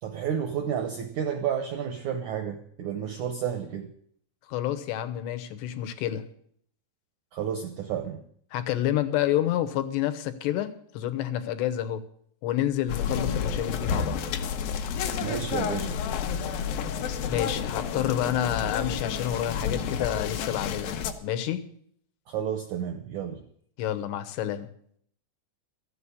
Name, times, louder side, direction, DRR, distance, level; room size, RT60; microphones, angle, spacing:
voice 1, 0.0-3.9 7.3-8.2 15.2-16.0 22.3-23.4, right 8 dB, 80° right, 7 dB, 1.7 m, -31 dB
voice 2, 4.5-6.2 8.5-12.0 12.4-14.3 17.2-21.6 23.8-24.7, left 11 dB, 90° left, 9 dB, 3.2 m, -29 dB
sound 1, 12.9-21.1, left 7 dB, 70° left, 2.4 m, -30 dB
14.5 x 7.8 x 9.7 m, 0.65 s
omnidirectional pair, 4.7 m